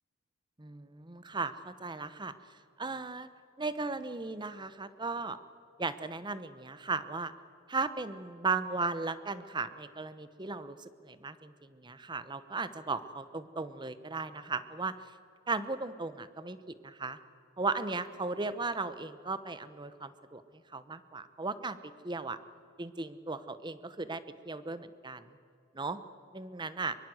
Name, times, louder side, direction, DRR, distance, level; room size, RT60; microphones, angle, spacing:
voice 1, 0.6-2.3 2.8-3.3 3.6-5.4 5.8-7.3 7.7-15.1 15.5-17.2 17.6-20.4 20.7-22.4 22.8-25.3 25.7-26.0 26.3-27.0, right 3 dB, 20° right, 13 dB, 0.9 m, -36 dB
23.0 x 22.5 x 7.8 m, 2.5 s
head